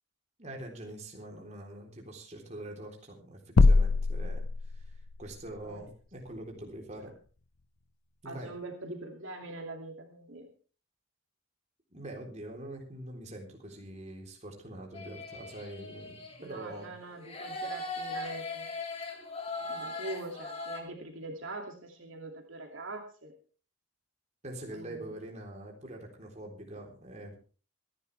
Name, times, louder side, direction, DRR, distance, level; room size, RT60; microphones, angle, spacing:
voice 1, 0.4-4.4 4.7-7.1 8.2-8.5 11.9-16.9 24.4-27.3, right 1 dB, 30° right, 1 dB, 3.7 m, -44 dB
sound 1, 3.6-5.2, left 3 dB, 75° left, 0.6 m, -23 dB
voice 2, 8.2-10.5 16.4-18.7 19.7-23.3 24.7-25.2, right 2 dB, 65° right, 2 dB, 2.6 m, -43 dB
sound 2, 14.9-16.9 17.2-20.8, left 2 dB, 25° left, 2.8 m, -40 dB
25.5 x 11.0 x 3.4 m, 0.38 s
head